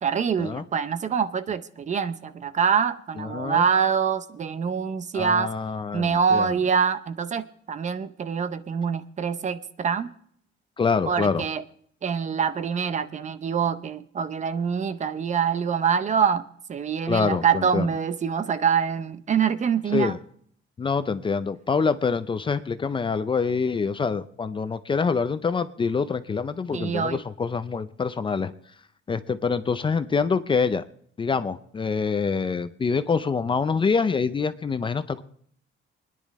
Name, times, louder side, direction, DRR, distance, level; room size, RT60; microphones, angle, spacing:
voice 1, 0.0-5.5 5.9-10.1 11.1-11.6 12.0-16.4 16.7-20.2 26.7-27.2, right 7 dB, 35° right, 12 dB, 0.6 m, -25 dB
voice 2, 3.2-3.6 5.1-6.5 10.8-11.4 17.1-17.9 19.9-20.2 20.8-28.5 29.1-30.8 31.2-35.2, left 5 dB, 25° left, 12 dB, 0.5 m, -25 dB
27.5 x 10.5 x 3.1 m, 0.63 s
cardioid pair, 140°, 20 cm